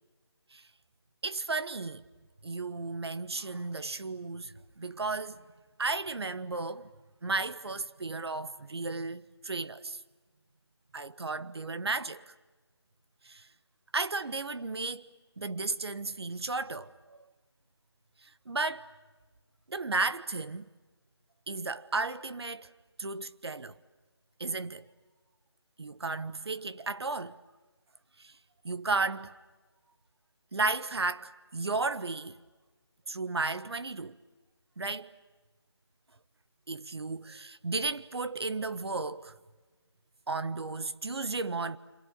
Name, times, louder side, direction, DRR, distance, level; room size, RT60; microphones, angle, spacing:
voice 1, 1.2-2.0 2.4-5.4 5.8-6.9 7.2-10.0 10.9-12.2 13.2-13.5 13.9-15.1 15.4-17.2 18.5-18.9 19.7-20.7 21.5-22.7 23.0-23.8 24.4-24.9 25.8-27.4 28.2-28.3 28.6-29.3 30.5-32.4 33.1-34.2 34.8-35.1 36.7-39.4 40.3-41.8, right 3 dB, 70° right, 1.4 m, -34 dB
27.5 x 27.0 x 7.9 m
figure-of-eight pair, 175°, 14 cm